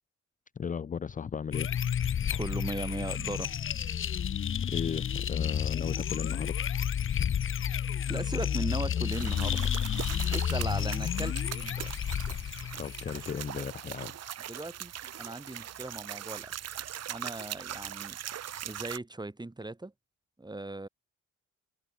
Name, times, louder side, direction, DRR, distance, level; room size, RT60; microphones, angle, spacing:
voice 1, 0.6-1.7 4.6-6.7 12.8-14.1, left 7 dB, 25° left, 0.6 m, -35 dB
sound 1, 1.5-13.5, left 8 dB, 45° left, 0.9 m, -31 dB
voice 2, 2.3-3.5 8.1-9.7 10.3-12.1 14.5-14.9 15.2-16.5 17.1-18.2 18.6-19.9 20.4-20.9, right 2 dB, 15° right, 6.2 m, -38 dB
sound 2, 9.1-19.0, right 10 dB, 55° right, 1.2 m, -40 dB
cardioid pair, 90°, 30 cm